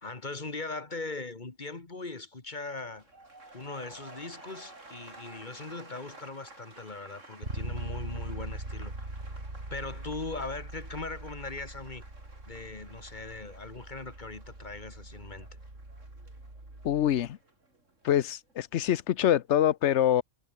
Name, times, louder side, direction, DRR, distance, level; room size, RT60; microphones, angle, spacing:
voice 1, 0.0-3.1 3.5-9.2 9.7-12.0 12.5-15.5, left 3 dB, 35° left, 2.3 m, -40 dB
sound 1, 2.8-18.9 19.2-19.6, right 2 dB, 75° right, 5.0 m, -53 dB
Bass guitar, 7.4-17.3, right 2 dB, 55° right, 5.5 m, -42 dB
voice 2, 16.8-17.4 18.0-20.2, left 11 dB, 65° left, 1.0 m, -25 dB
omnidirectional pair, 1.3 m